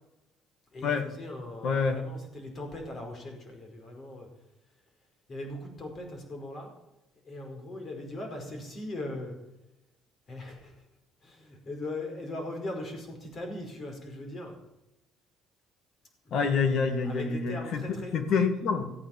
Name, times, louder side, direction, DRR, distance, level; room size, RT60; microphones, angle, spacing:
voice 1, 0.7-4.3 5.3-6.7 7.2-9.3 10.3-10.8 11.2-14.6 16.2-16.7 17.0-18.1, left 1 dB, 40° left, 3 dB, 5.0 m, -39 dB
voice 2, 1.6-2.1 16.3-18.9, left 5 dB, 60° left, 8 dB, 2.2 m, -27 dB
15.0 x 8.8 x 7.4 m, 0.96 s
cardioid pair, 110°, 0 cm